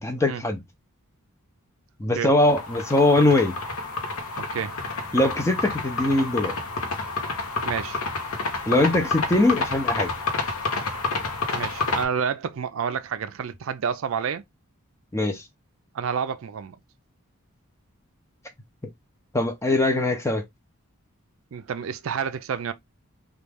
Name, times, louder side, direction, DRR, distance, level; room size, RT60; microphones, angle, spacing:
voice 1, 0.0-0.6 2.0-3.5 5.1-6.6 8.7-10.1 15.1-15.4 19.3-20.4, left 2 dB, 15° left, 0.5 m, -21 dB
sound 1, 2.4-12.0, left 3 dB, 80° left, 0.8 m, -29 dB
voice 2, 4.4-4.8 7.6-8.0 11.5-14.4 15.9-16.8 21.5-22.7, right 7 dB, 70° right, 0.4 m, -29 dB
3.0 x 2.4 x 3.4 m
head